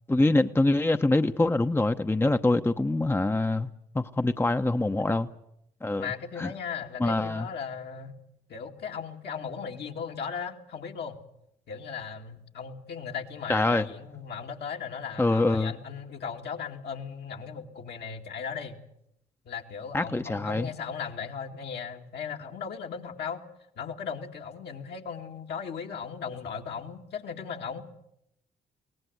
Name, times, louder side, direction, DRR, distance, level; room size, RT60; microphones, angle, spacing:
voice 1, 0.1-3.7 3.9-5.3 5.8-6.1 6.4-6.5 7.0-7.5 13.5-13.8 15.2-15.7 19.9-20.7, left 2 dB, 10° left, 0.9 m, -24 dB
voice 2, 6.0-8.2 8.5-11.2 11.7-18.8 19.4-23.4 23.8-27.8, left 6 dB, 65° left, 2.3 m, -37 dB
23.0 x 18.5 x 7.9 m
hypercardioid pair, 50°, 18 cm